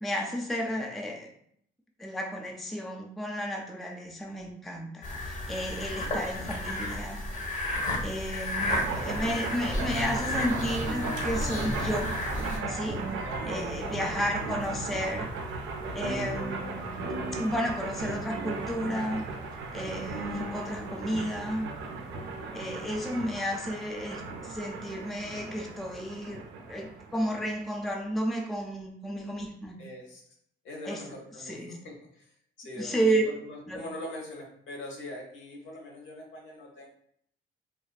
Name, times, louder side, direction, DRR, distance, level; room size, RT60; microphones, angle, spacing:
voice 1, 0.0-1.3 2.0-7.2 8.0-12.1 12.7-13.0 13.5-15.3 15.9-19.2 19.7-21.7 22.5-29.8 30.8-31.0 31.4-31.7 32.7-33.2 33.7-33.8, equal, ahead, 1 dB, 0.3 m, -32 dB
sound 1, 5.0-12.6, left 1 dB, 40° left, 0.7 m, -33 dB
sound 2, 8.6-27.8, right 3 dB, 80° right, 0.4 m, -36 dB
sound 3, 10.5-16.4, right 1 dB, 35° right, 0.7 m, -47 dB
voice 2, 13.2-13.7 29.8-30.2 30.6-36.9, left 1 dB, 75° left, 0 dB, 0.8 m, -42 dB
2.4 x 2.4 x 2.2 m, 0.68 s
cardioid pair, 90°, 20 cm